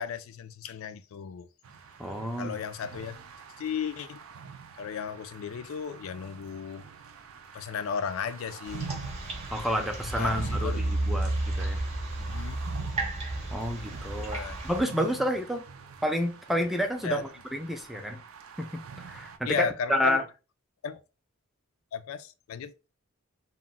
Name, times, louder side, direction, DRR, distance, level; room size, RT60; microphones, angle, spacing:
voice 1, 0.0-1.5 2.4-3.2 3.6-4.2 4.8-6.9 7.5-9.0 10.1-11.4 12.2-12.6 14.2-14.6 17.0-17.2 19.4-20.2 20.8-21.0 21.9-22.7, left 6 dB, 75° left, 0.3 m, -35 dB
sound 1, 1.6-19.4, right 6 dB, 85° right, 0.4 m, -45 dB
voice 2, 2.0-2.6 9.5-11.8 13.5-14.4 14.6-15.7 16.0-18.2 18.6-18.8 19.1-20.2, equal, ahead, 0.4 m, -30 dB
sound 2, 8.7-14.8, right 2 dB, 30° right, 0.7 m, -32 dB
2.3 x 2.1 x 3.7 m
head